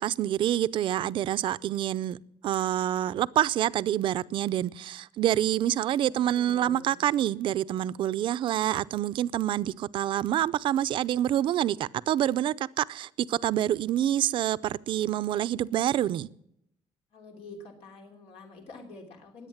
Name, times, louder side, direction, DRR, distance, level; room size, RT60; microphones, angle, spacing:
voice 1, 0.0-2.2 2.4-16.3, right 12 dB, 55° right, 0.5 m, -27 dB
voice 2, 6.0-6.9 17.1-19.5, left 3 dB, 90° left, 3.4 m, -47 dB
21.0 x 8.6 x 7.3 m
cardioid pair, 170°, 10 cm